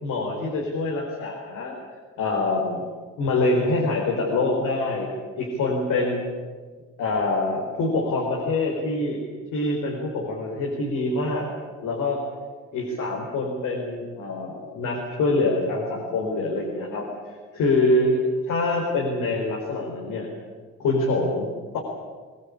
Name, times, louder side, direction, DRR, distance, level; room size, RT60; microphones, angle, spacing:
voice 1, 0.0-1.7 2.2-2.9 3.2-6.2 7.0-9.2 9.5-11.5 11.8-12.2 12.7-18.2 18.5-20.3 20.8-21.8, left 2 dB, 80° left, -1 dB, 4.6 m, -25 dB
22.5 x 19.5 x 8.7 m, 1.5 s
cardioid pair, 90°, 30 cm